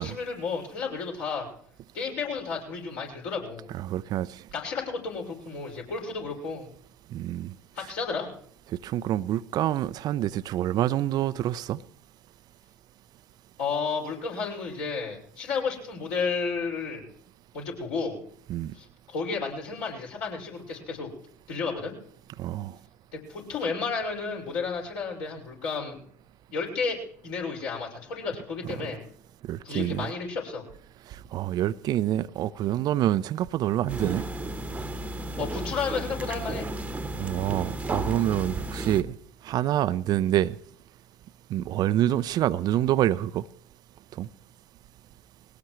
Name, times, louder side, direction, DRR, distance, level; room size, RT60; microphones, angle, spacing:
voice 1, 0.0-1.5 1.9-3.7 4.5-6.7 7.7-8.3 13.6-17.1 17.5-18.2 18.7-21.1 21.5-22.0 23.1-26.0 26.5-29.0 29.6-30.6 35.4-36.7, left 5 dB, 65° left, 5.7 m, -32 dB
voice 2, 3.7-4.4 7.1-7.5 8.7-11.8 18.5-18.7 22.4-22.8 29.5-30.1 31.1-34.2 37.2-39.1 39.4-40.5 41.5-43.4 44.2-44.3, right 12 dB, 45° right, 0.5 m, -27 dB
sound 1, 33.9-39.0, right 1 dB, 15° right, 1.2 m, -33 dB
21.5 x 18.0 x 3.2 m
figure-of-eight pair, 65°, 9 cm